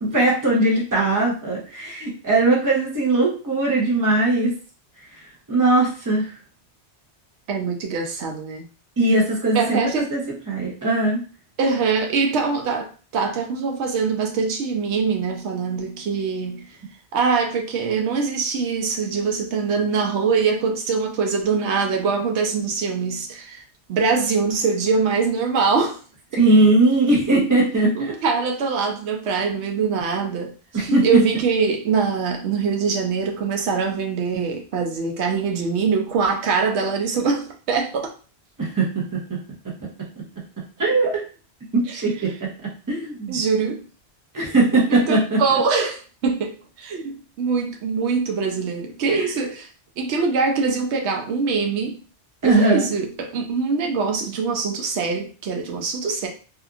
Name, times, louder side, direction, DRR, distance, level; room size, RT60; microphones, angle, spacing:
voice 1, 0.0-4.5 5.5-6.3 9.0-10.2 10.5-11.2 26.3-28.1 30.7-31.2 38.6-39.2 40.8-41.2 41.7-42.3 42.9-43.4 44.3-45.4 49.1-49.3 52.4-52.9, right 2 dB, 20° right, -2 dB, 0.7 m, -19 dB
voice 2, 7.5-8.6 9.5-10.1 11.6-16.7 17.1-23.6 23.9-26.0 26.3-26.4 28.0-38.1 41.9-42.0 43.3-43.8 44.9-49.7 50.0-52.0 52.4-56.3, right 5 dB, 80° right, 3 dB, 0.9 m, -23 dB
2.7 x 2.4 x 2.4 m, 0.38 s
omnidirectional pair, 1.1 m